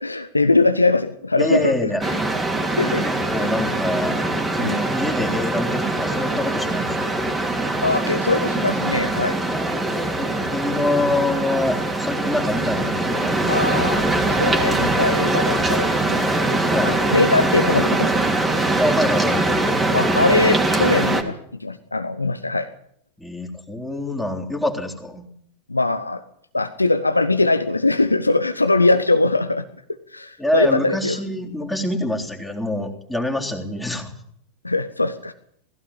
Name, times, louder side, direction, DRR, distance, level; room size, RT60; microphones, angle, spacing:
voice 1, 0.0-1.7 2.0-2.2 2.7-3.1 3.4-3.5 4.6-4.8 7.8-9.4 13.5-16.3 16.8-18.2 19.9-22.7 25.7-26.2 26.5-29.6 30.1-31.2 34.6-35.3, left 2 dB, 80° left, 9 dB, 1.0 m, -21 dB
voice 2, 1.4-2.4 3.0-4.2 4.5-7.0 9.5-13.7 16.7-17.0 18.8-19.4 23.2-25.3 30.4-34.1, left 1 dB, ahead, -1 dB, 3.7 m, -25 dB
sound 1, 2.0-21.2, right 2 dB, 15° right, 3.1 m, -22 dB
19.5 x 16.0 x 8.7 m, 0.69 s
figure-of-eight pair, 90°, 0 cm